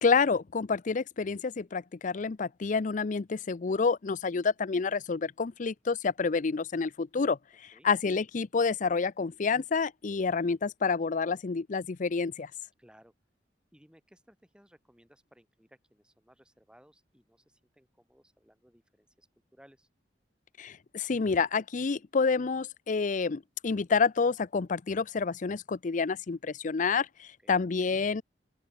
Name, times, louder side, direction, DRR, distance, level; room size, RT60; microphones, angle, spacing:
voice 1, 0.0-12.5 20.6-28.2, left 5 dB, 45° left, 0.5 m, -28 dB
voice 2, 12.8-13.1 13.7-19.9 27.4-27.6, equal, 5° right, 5.8 m, -61 dB
open air
head